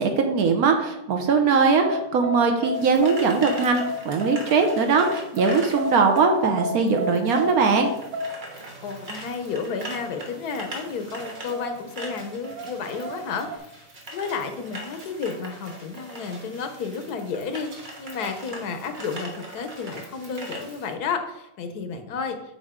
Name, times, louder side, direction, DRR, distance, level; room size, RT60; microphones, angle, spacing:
voice 1, 0.0-7.9, right 5 dB, 75° right, 4 dB, 1.2 m, -21 dB
sound 1, 1.6-13.6, left 1 dB, 60° right, 0.6 m, -33 dB
sound 2, 2.7-20.9, right 1 dB, 35° right, 1.3 m, -41 dB
voice 2, 8.8-13.8 14.1-22.4, left 5 dB, 85° left, 7 dB, 1.4 m, -32 dB
7.8 x 5.2 x 3.6 m, 0.87 s
omnidirectional pair, 1.6 m